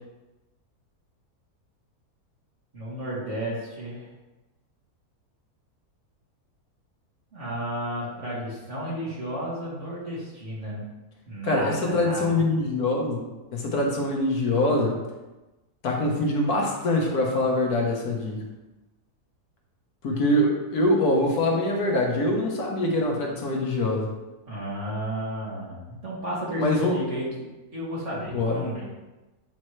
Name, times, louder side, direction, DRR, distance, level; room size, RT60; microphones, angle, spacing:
voice 1, 2.7-4.1 7.3-10.8 11.3-12.5 24.5-27.3 27.7-28.9, right 1 dB, 50° right, -8 dB, 2.7 m, -33 dB
voice 2, 11.4-15.0 15.8-18.4 20.0-24.1 26.6-27.0 28.3-28.6, left 1 dB, 75° left, 0 dB, 1.6 m, -24 dB
9.2 x 4.3 x 3.2 m, 1.1 s
omnidirectional pair, 1.6 m